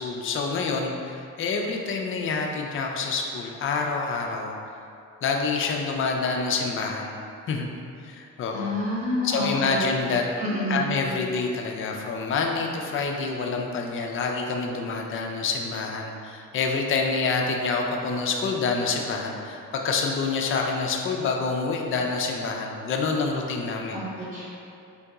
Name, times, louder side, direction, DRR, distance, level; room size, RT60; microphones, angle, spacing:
voice 1, 0.0-4.6 5.2-7.2 7.5-7.7 8.0-8.7 9.2-10.2 10.7-24.3, left 4 dB, 45° left, 1 dB, 0.4 m, -27 dB
voice 2, 8.5-9.8 10.4-10.9 23.9-24.5, left 1 dB, 25° right, -7 dB, 0.9 m, -28 dB
3.8 x 2.6 x 2.3 m, 2.5 s
cardioid pair, 90°, 30 cm